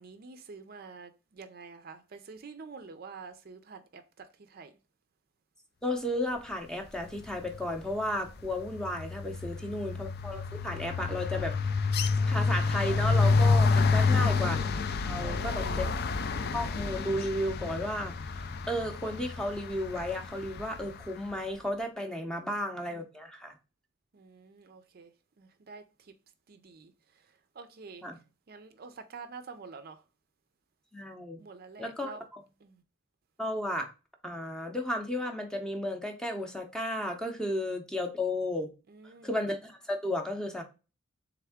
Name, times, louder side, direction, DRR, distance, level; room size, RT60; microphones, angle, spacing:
voice 1, 0.0-4.7 9.4-9.9 13.9-14.4 15.2-15.8 22.3-22.6 24.1-26.1 26.5-28.1 28.5-30.0 31.4-32.2 32.6-32.8 38.9-39.3, right 4 dB, 50° right, 0.5 m, -48 dB
voice 2, 5.8-11.6 12.3-14.7 15.1-15.9 16.5-23.5 28.0-28.2 30.9-31.4 31.8-32.4 33.4-33.9 34.2-38.7 39.2-40.6, left 1 dB, 5° left, 0.6 m, -33 dB
sound 1, 7.3-7.6 7.9-21.0, left 4 dB, 50° left, 0.4 m, -29 dB
3.5 x 3.4 x 3.5 m
head